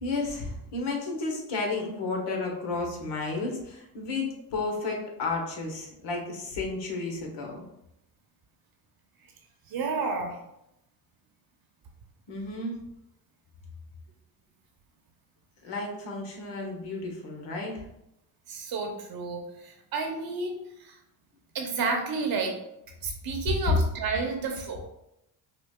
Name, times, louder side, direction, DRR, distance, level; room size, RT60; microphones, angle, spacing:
voice 1, 0.0-7.6 12.3-12.8 15.6-17.8, left 3 dB, 65° left, 0 dB, 1.2 m, -32 dB
voice 2, 9.7-10.4 18.5-21.0 21.5-22.6 23.0-24.9, right 4 dB, 50° right, 3 dB, 1.0 m, -31 dB
5.7 x 2.3 x 2.3 m, 0.83 s
supercardioid pair, 70°, 45 cm